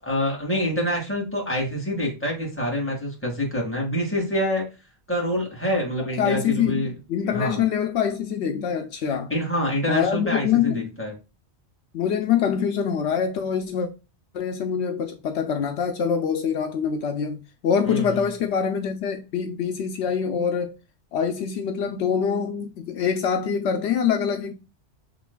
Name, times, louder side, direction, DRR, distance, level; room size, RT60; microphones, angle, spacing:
voice 1, 0.0-4.7 5.1-6.9 7.3-7.6 9.3-11.1 17.9-18.2, equal, 10° left, 2.0 m, -26 dB
voice 2, 6.2-9.3 9.9-10.9 11.9-13.9 14.3-20.7 21.1-24.5, left 7 dB, 75° left, 0.9 m, -25 dB
7.4 x 3.1 x 2.2 m
omnidirectional pair, 1.1 m